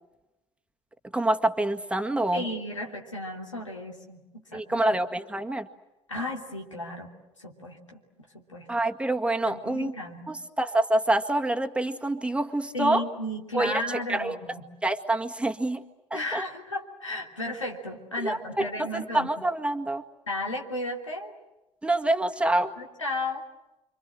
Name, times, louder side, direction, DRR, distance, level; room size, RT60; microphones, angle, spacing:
voice 1, 1.1-2.4 4.5-5.7 8.7-10.0 10.3-13.0 13.5-14.4 14.8-15.8 16.1-16.4 18.2-20.0 21.8-22.7, right 1 dB, 5° right, 5 dB, 1.9 m, -26 dB
voice 2, 2.3-4.8 6.1-7.1 7.4-8.0 8.3-8.7 9.4-10.3 12.7-14.6 16.1-19.3 20.3-21.3 22.8-23.4, left 1 dB, 85° left, 1 dB, 3.1 m, -34 dB
30.0 x 25.0 x 7.6 m, 0.98 s
figure-of-eight pair, 60°, 16 cm